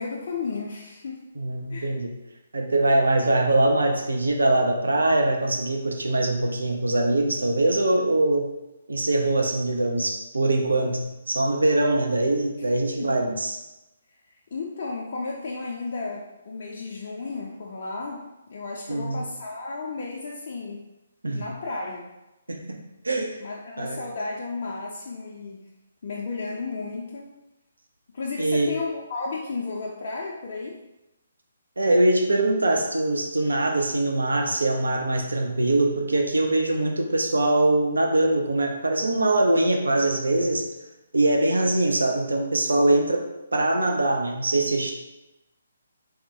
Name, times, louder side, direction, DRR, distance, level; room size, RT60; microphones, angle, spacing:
voice 1, 0.0-1.2 1.7-2.0 13.0-13.1 14.5-18.2 18.5-20.8 21.3-22.1 23.4-25.6 26.0-27.3 28.1-30.8, left 3 dB, 50° left, -3 dB, 0.4 m, -33 dB
voice 2, 1.4-2.1 2.5-8.5 8.9-13.6 18.9-19.2 21.2-21.4 22.5-23.4 23.8-24.0 28.4-28.8 31.8-40.7 41.1-44.9, right 2 dB, 75° right, 2 dB, 0.4 m, -23 dB
3.5 x 2.2 x 2.8 m, 0.97 s
figure-of-eight pair, 135°, 0 cm